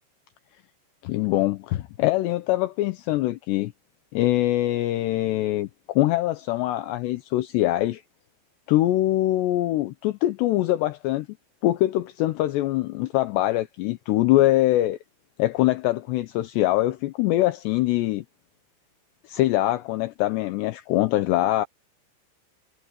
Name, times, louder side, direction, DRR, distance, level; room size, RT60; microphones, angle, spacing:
voice 1, 1.0-3.7 4.1-8.0 8.7-11.3 11.6-15.0 15.4-18.2 19.3-21.7, left 16 dB, 80° left, 2.6 m, -23 dB
omnidirectional pair, 5.9 m